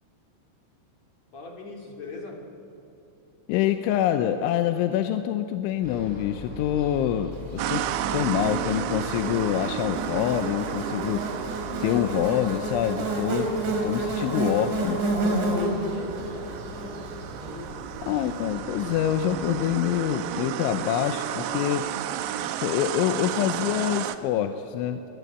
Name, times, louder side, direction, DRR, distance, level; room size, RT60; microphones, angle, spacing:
voice 1, 1.3-2.4 15.9-17.0, left 3 dB, 40° left, 1 dB, 3.2 m, -41 dB
voice 2, 3.5-7.9 8.1-11.2 11.8-13.5 13.8-15.0 18.0-21.9 22.6-25.1, left 11 dB, 80° left, 8 dB, 3.1 m, -26 dB
sound 1, 5.8-19.8, left 3 dB, 10° left, 5.1 m, -41 dB
sound 2, 7.6-24.2, right 11 dB, 85° right, 3.7 m, -33 dB
Buzz, 7.7-18.1, right 2 dB, 60° right, 5.7 m, -30 dB
29.5 x 24.5 x 8.3 m, 2.9 s
omnidirectional pair, 5.8 m